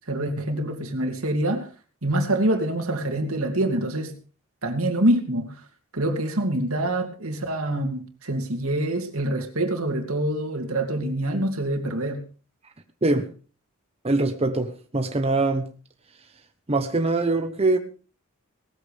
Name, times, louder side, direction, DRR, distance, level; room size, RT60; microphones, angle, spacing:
voice 1, 0.1-1.7 2.0-4.2 4.6-5.6 5.9-12.2, right 1 dB, 80° right, 2.6 m, -25 dB
voice 2, 14.0-15.7 16.7-17.8, right 2 dB, 30° right, 1.1 m, -23 dB
18.5 x 14.0 x 3.5 m
head